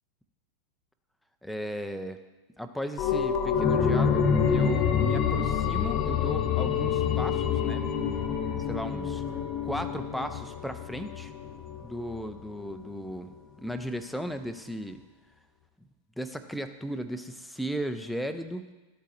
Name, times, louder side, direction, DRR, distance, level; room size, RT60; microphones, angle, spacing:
voice 1, 1.4-2.2 2.6-7.9 8.5-9.2 9.6-11.3 11.8-13.3 13.6-15.0 16.2-18.7, equal, ahead, 7 dB, 0.5 m, -36 dB
sound 1, 3.0-12.3 12.7-12.8, left 7 dB, 35° left, 0.7 m, -27 dB
12.0 x 8.2 x 3.0 m, 1.1 s
figure-of-eight pair, 90°, 0 cm